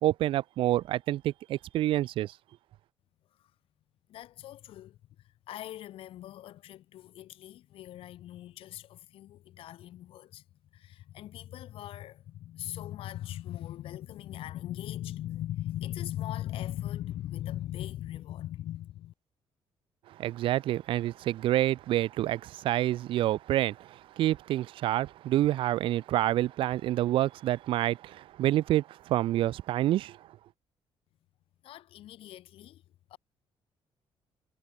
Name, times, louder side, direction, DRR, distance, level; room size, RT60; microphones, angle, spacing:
voice 1, 0.0-2.3 20.2-30.2, right 14 dB, 60° right, 0.4 m, -28 dB
voice 2, 4.1-19.1 31.6-32.8 33.1-33.2, left 13 dB, 70° left, 1.8 m, -40 dB
cardioid pair, 170°, 10 cm